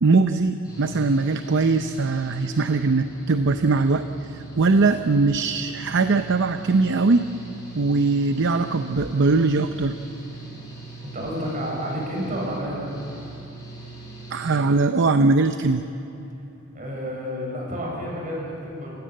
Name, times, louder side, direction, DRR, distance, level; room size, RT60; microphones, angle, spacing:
voice 1, 0.0-7.3 7.7-10.0 14.3-15.8, right 3 dB, 60° right, 8 dB, 0.7 m, -21 dB
Engine / Mechanical fan, 0.6-14.6, right 2 dB, 15° left, 7.6 m, -41 dB
voice 2, 11.0-12.9 16.7-19.0, equal, 40° right, -2 dB, 7.0 m, -30 dB
27.0 x 17.0 x 7.7 m, 2.8 s
head